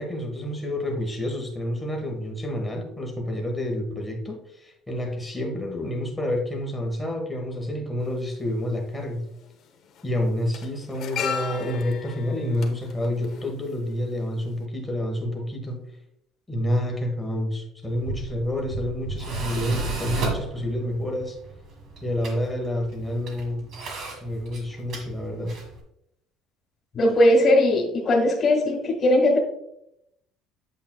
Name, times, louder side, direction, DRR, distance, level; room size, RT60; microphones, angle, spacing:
voice 1, 0.0-9.2 10.0-15.8 16.5-21.4 22.0-23.7 24.2-25.5, left 1 dB, 10° left, 1 dB, 1.3 m, -29 dB
sound 1, 8.0-8.1 9.3-9.6 9.9-14.2 14.5-14.6, left 7 dB, 45° left, 0.9 m, -35 dB
Tools, 17.8-25.8, right 3 dB, 50° right, 1.6 m, -34 dB
voice 2, 26.9-29.4, left 1 dB, 25° left, 0 dB, 1.7 m, -19 dB
8.2 x 7.6 x 2.3 m, 0.77 s
cardioid pair, 155°, 0 cm